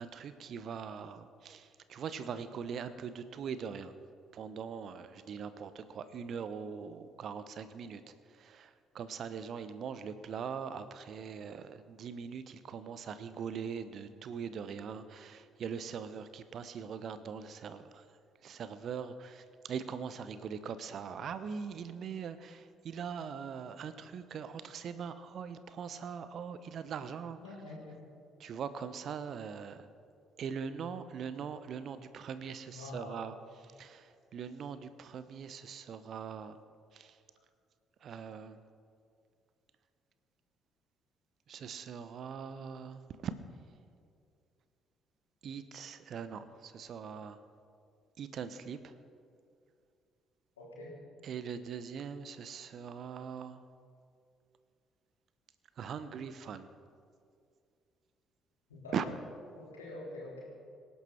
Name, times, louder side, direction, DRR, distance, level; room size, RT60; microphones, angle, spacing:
voice 1, 0.0-3.9 4.3-18.1 18.4-27.4 28.4-29.9 30.4-36.6 36.9-37.2 38.0-38.6 41.5-43.3 45.4-47.4 48.2-49.0 51.2-53.6 55.8-56.7 58.9-59.1, right 7 dB, 50° right, 13 dB, 0.9 m, -41 dB
voice 2, 27.4-28.0 32.7-33.3 50.6-50.9 58.7-59.0 59.5-60.4, left 2 dB, 80° left, -6 dB, 4.3 m, -45 dB
25.5 x 11.5 x 4.5 m, 2.3 s
figure-of-eight pair, 45°, 0 cm